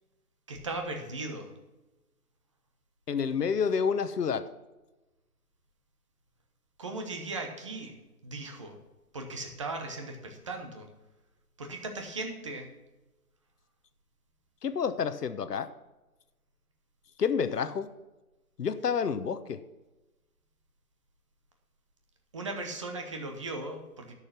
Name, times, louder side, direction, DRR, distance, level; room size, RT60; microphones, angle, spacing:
voice 1, 0.5-1.5 6.8-7.9 8.2-8.8 9.1-10.9 11.6-12.7 22.3-24.1, right 2 dB, 20° right, 4 dB, 0.9 m, -37 dB
voice 2, 3.1-4.5 14.6-15.7 17.2-17.9 18.6-19.6, left 6 dB, 85° left, 12 dB, 1.1 m, -29 dB
12.5 x 6.7 x 5.8 m, 1.1 s
hypercardioid pair, 170°, 46 cm